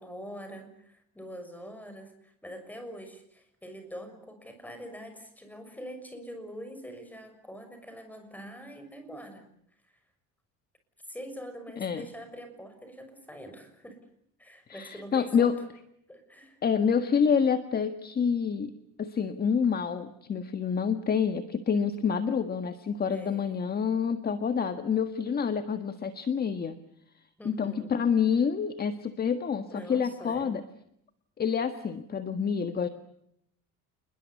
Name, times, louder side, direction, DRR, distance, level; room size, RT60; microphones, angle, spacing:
voice 1, 0.0-9.5 11.1-14.0 14.4-15.5 16.1-16.6 23.1-23.8 27.4-28.0 29.7-30.5, equal, 5° left, 7 dB, 6.3 m, -44 dB
voice 2, 14.7-15.6 16.6-18.7 19.0-26.8 27.4-30.6 31.4-32.9, left 6 dB, 30° left, 9 dB, 1.6 m, -27 dB
28.5 x 21.5 x 8.3 m, 0.74 s
cardioid pair, 140°, 33 cm